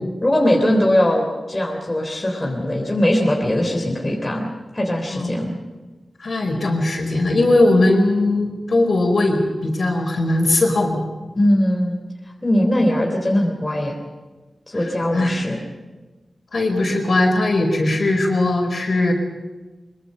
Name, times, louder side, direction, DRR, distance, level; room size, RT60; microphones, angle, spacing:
voice 1, 0.2-5.5 11.4-12.0 12.4-14.0 14.7-15.6, left 1 dB, 20° left, 0 dB, 3.5 m, -20 dB
voice 2, 6.2-11.0 14.8-15.4 16.5-19.1, left 2 dB, 55° left, 3 dB, 4.8 m, -19 dB
23.5 x 23.5 x 5.5 m, 1.2 s
wide cardioid pair, 125°, 0 cm